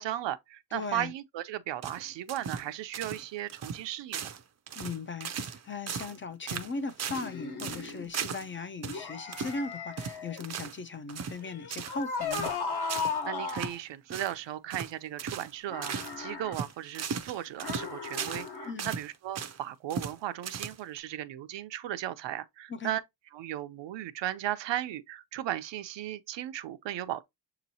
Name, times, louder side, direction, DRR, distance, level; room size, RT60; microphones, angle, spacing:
voice 1, 0.0-4.4 13.2-23.0 23.3-27.2, right 12 dB, 80° right, 0.6 m, -36 dB
voice 2, 0.7-1.1 4.8-12.5 18.6-18.9 22.7-22.9, left 4 dB, 30° left, 0.4 m, -38 dB
sound 1, 1.8-3.2 3.5-3.8 4.1-4.4 4.7-5.6 5.9-6.2 6.5-7.3 7.6-8.5 8.8-9.0 9.3-9.6 10.0-10.8 11.1-11.4 11.7-12.0 12.3-12.6 12.9-13.2 13.5-13.8 14.1-14.4 14.7-14.9 15.2-15.5 15.8-16.2 16.5-18.5 18.8-19.6 19.9-20.2 20.4-21.0, right 7 dB, 40° right, 0.5 m, -37 dB
sound 2, 7.1-8.1 8.8-10.4 11.4-13.8 15.7-16.5 17.6-18.7, left 5 dB, 60° left, 1.2 m, -36 dB
6.7 x 2.9 x 2.7 m
wide cardioid pair, 150°, 43 cm